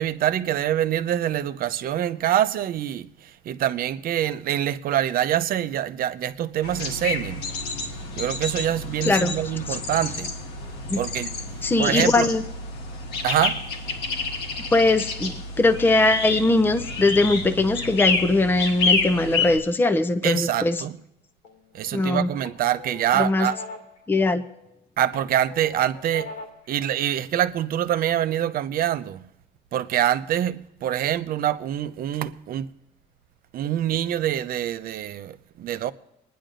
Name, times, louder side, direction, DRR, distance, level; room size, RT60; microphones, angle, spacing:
voice 1, 0.0-7.5 8.2-10.3 11.0-11.3 11.8-12.3 13.2-13.6 20.2-20.9 21.7-23.5 25.0-26.3 26.7-29.2 29.7-32.7 33.5-35.9, right 11 dB, 60° right, 0.6 m, -25 dB
sound 1, 6.6-19.6, left 4 dB, 85° left, 1.5 m, -29 dB
voice 2, 9.0-9.4 9.7-9.8 10.9-11.0 11.6-12.4 14.7-20.8 21.9-22.3 23.1-23.5 24.1-24.4, left 2 dB, 10° left, 0.6 m, -21 dB
sound 2, 21.4-22.0 22.4-24.7 25.1-26.7, left 3 dB, 65° left, 2.2 m, -41 dB
27.5 x 10.0 x 2.5 m
cardioid pair, 110°, 17 cm